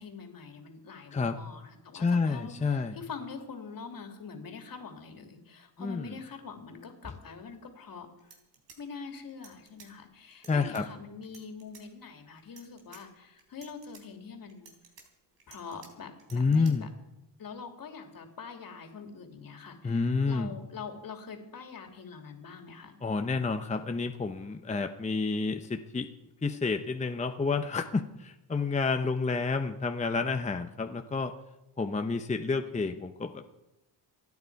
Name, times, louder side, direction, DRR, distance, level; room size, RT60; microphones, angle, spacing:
voice 1, 0.0-8.1 8.8-14.7 15.5-16.9 17.4-22.9, left 5 dB, 50° left, 4 dB, 2.7 m, -44 dB
voice 2, 1.9-3.0 5.8-6.1 10.5-10.8 16.3-16.9 19.8-20.5 23.0-26.1 26.4-31.3 31.8-33.5, left 4 dB, 15° left, 6 dB, 0.8 m, -29 dB
sound 1, 7.8-7.9 8.2-9.9 10.3-10.8 11.2-11.8 12.4-13.0 13.4-14.0 14.5-15.9 16.2-16.7, right 5 dB, 85° right, 3.7 m, -54 dB
27.5 x 9.6 x 4.7 m, 0.94 s
cardioid pair, 115°, 43 cm